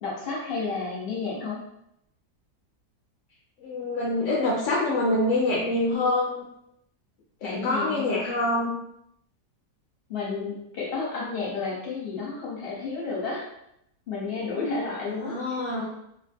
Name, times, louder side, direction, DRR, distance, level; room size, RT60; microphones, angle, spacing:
voice 1, 0.0-1.6 7.4-8.1 10.1-13.4 14.1-15.4, left 4 dB, 45° left, -4 dB, 0.9 m, -31 dB
voice 2, 3.6-6.5 7.4-8.7 15.2-15.8, left 2 dB, 70° left, -4 dB, 0.7 m, -25 dB
2.7 x 2.1 x 3.3 m, 0.77 s
omnidirectional pair, 1.8 m